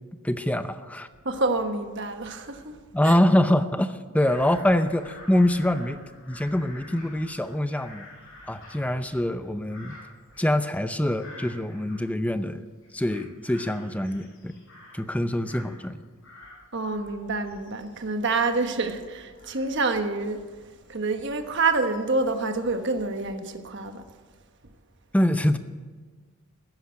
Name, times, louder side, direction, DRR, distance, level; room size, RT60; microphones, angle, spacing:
voice 1, 0.2-1.1 2.9-6.0 6.3-8.1 8.5-10.0 10.4-12.6 12.9-14.5 14.9-16.0 25.1-25.6, left 1 dB, 5° left, 10 dB, 0.6 m, -24 dB
voice 2, 1.2-3.1 16.7-24.1, right 3 dB, 55° right, 7 dB, 1.2 m, -27 dB
Bird vocalization bird call bird song / Crow, 4.1-12.5 12.8-15.9 16.2-22.2 22.8-23.3, left 2 dB, 60° left, 5.4 m, -49 dB
14.0 x 10.0 x 8.6 m, 1.5 s
head